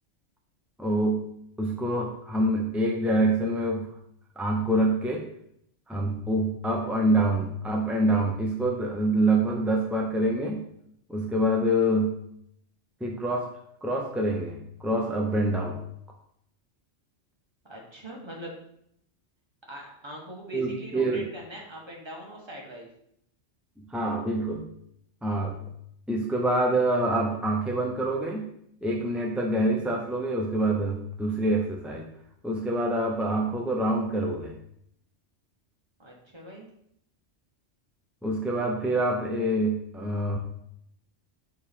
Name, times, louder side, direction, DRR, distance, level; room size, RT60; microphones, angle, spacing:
voice 1, 0.8-1.3 1.6-3.9 4.4-5.3 5.9-10.6 11.1-12.2 13.0-13.5 13.8-15.8 20.5-21.3 23.8-24.7 25.2-25.6 26.1-28.5 28.8-32.1 32.4-34.5 38.2-40.4, right 1 dB, ahead, 0 dB, 0.4 m, -26 dB
voice 2, 17.7-18.5 19.7-22.9 36.0-36.7, equal, 25° right, -2 dB, 1.5 m, -41 dB
6.4 x 4.7 x 3.6 m, 0.72 s
omnidirectional pair, 1.2 m